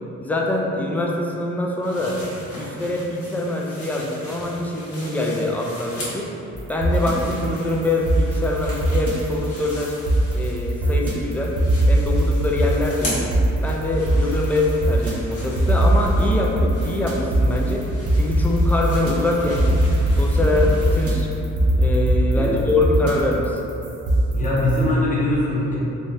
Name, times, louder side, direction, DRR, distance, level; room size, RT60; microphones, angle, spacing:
voice 1, 0.2-2.2 2.5-6.3 6.7-9.9 10.3-11.6 11.9-13.3 13.6-17.8 18.1-19.8 20.1-21.3 21.8-23.7, left 2 dB, 5° left, -1 dB, 0.3 m, -24 dB
sound 1, 1.8-6.4 6.7-10.9 11.2-21.1, left 1 dB, 75° left, 1.2 m, -38 dB
sound 2, 6.5-24.8, right 1 dB, 50° right, 0.7 m, -21 dB
voice 2, 20.4-20.7 22.3-22.6 24.3-25.8, left 1 dB, 25° left, -7 dB, 0.9 m, -23 dB
3.7 x 2.3 x 2.6 m, 2.8 s
cardioid pair, 90°, 30 cm